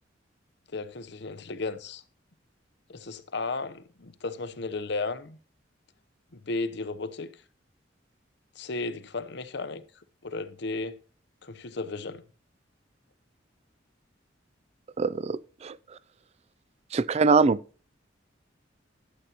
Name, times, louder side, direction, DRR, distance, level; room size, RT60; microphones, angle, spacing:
voice 1, 0.7-2.0 2.9-5.4 6.3-7.3 8.6-9.8 10.2-11.0 11.4-12.2, left 3 dB, 65° left, 0.8 m, -34 dB
voice 2, 15.0-15.8 16.9-17.6, right 4 dB, 35° right, 0.3 m, -23 dB
13.0 x 8.1 x 2.9 m
head